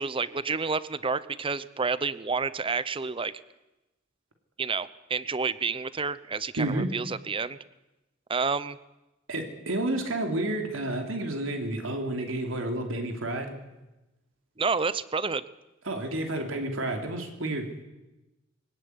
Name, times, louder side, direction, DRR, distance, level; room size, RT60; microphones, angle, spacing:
voice 1, 0.0-3.3 4.6-7.6 8.3-8.8 14.6-15.4, right 4 dB, 25° right, 16 dB, 0.8 m, -29 dB
voice 2, 6.6-6.9 9.3-13.6 15.8-17.7, right 1 dB, 85° right, 4 dB, 3.1 m, -30 dB
21.5 x 17.5 x 9.7 m, 1.0 s
head